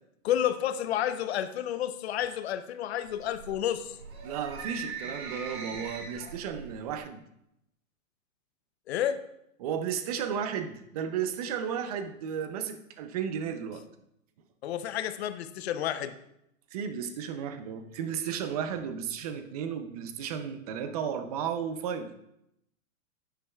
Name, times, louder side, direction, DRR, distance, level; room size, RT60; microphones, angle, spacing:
voice 1, 0.2-4.0 8.9-9.2 14.6-16.1, left 10 dB, 50° left, 11 dB, 0.7 m, -30 dB
sound 1, 3.0-7.0, right 5 dB, 75° right, 2.9 m, -41 dB
voice 2, 4.2-7.2 9.6-13.8 16.7-22.1, right 8 dB, 30° right, 9 dB, 0.6 m, -34 dB
10.0 x 9.9 x 2.3 m, 0.79 s
hypercardioid pair, 150°, 42 cm